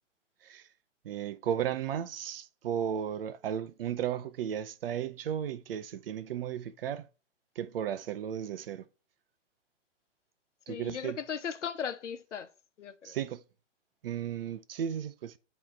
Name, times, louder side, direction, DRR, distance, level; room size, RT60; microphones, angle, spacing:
voice 1, 1.0-7.1 7.6-8.8 10.7-11.2 13.0-13.4 14.0-15.4, right 9 dB, 50° right, 0.7 m, -34 dB
voice 2, 10.7-12.5 12.8-13.2, left 7 dB, 70° left, 1.0 m, -37 dB
8.5 x 3.2 x 4.4 m
hypercardioid pair, 130°, 37 cm